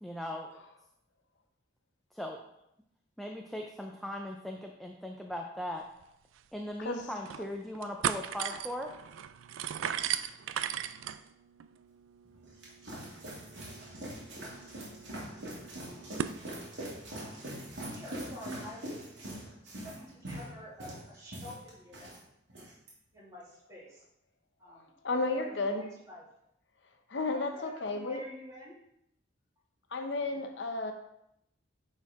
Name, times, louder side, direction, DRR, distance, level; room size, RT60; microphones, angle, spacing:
voice 1, 0.0-0.5 2.1-2.4 3.2-5.9 6.5-8.9, left 1 dB, ahead, 1 dB, 0.5 m, -39 dB
sound 1, 6.0-6.1 6.4-6.5 7.0-7.4 7.7-16.4, right 9 dB, 85° right, 0.4 m, -38 dB
voice 2, 8.4-8.7 25.0-25.9 27.1-28.2 29.9-30.9, left 3 dB, 65° left, 5 dB, 0.7 m, -33 dB
sound 2, 12.3-22.2 22.5-22.9, right 1 dB, 60° right, 2.3 m, -43 dB
voice 3, 17.9-19.1 19.8-22.1 23.1-24.0 24.6-24.9 25.3-26.3 27.2-28.8, left 1 dB, 15° right, -6 dB, 2.3 m, -48 dB
9.8 x 4.4 x 3.6 m, 0.78 s
head